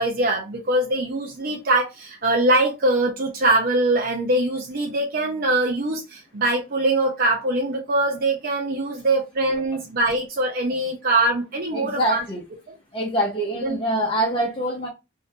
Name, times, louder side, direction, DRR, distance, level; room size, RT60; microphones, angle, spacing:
voice 1, 0.0-12.2 13.6-13.8, right 2 dB, 45° right, 0.6 m, -22 dB
voice 2, 11.7-12.4 12.9-14.9, right 1 dB, 25° left, 0.8 m, -24 dB
2.7 x 2.6 x 3.4 m
head